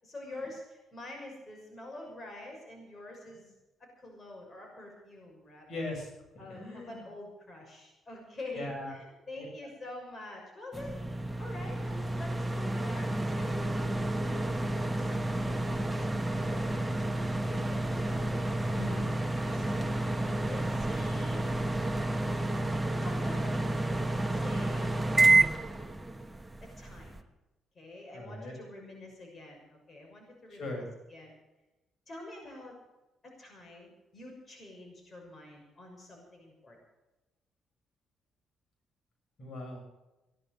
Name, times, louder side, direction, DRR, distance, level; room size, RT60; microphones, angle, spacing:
voice 1, 0.0-3.5 3.8-5.9 6.4-11.0 11.4-13.8 14.9-17.0 17.5-18.4 18.9-19.1 19.4-19.9 20.5-21.4 22.8-23.5 24.3-25.0 26.6-27.3 27.7-31.3 32.1-32.8 33.2-36.8, left 2 dB, 35° left, 0 dB, 6.3 m, -47 dB
voice 2, 5.7-6.1 6.5-7.0 8.5-8.9 9.4-9.5 18.7-19.1 28.1-28.5 30.5-30.8 39.4-39.8, left 2 dB, 55° left, 1 dB, 6.6 m, -39 dB
sound 1, 10.7-27.2, right 2 dB, 10° right, 1.3 m, -30 dB
18.0 x 11.5 x 6.8 m, 1.0 s
cardioid pair, 90°, 0 cm